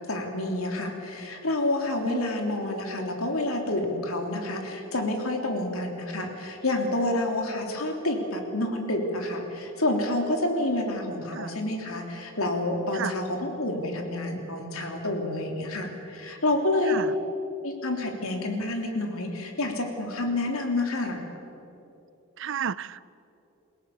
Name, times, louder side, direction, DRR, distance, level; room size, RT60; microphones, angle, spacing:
voice 1, 0.1-17.0 17.6-21.2, left 1 dB, 90° left, 2 dB, 3.3 m, -28 dB
voice 2, 22.4-23.0, right 7 dB, 60° right, 19 dB, 0.5 m, -32 dB
28.5 x 17.0 x 7.1 m, 2.9 s
head